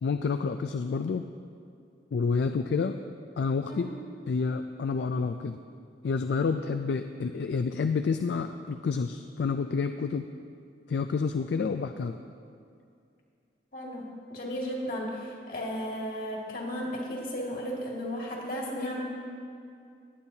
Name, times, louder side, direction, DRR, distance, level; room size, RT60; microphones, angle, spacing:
voice 1, 0.0-1.2 2.1-3.0 3.4-3.9 4.3-5.6 6.0-10.2 10.9-12.2, left 5 dB, 70° left, 7 dB, 0.3 m, -29 dB
voice 2, 13.7-19.0, equal, 55° left, -3 dB, 2.1 m, -34 dB
18.5 x 8.7 x 2.8 m, 2.4 s
head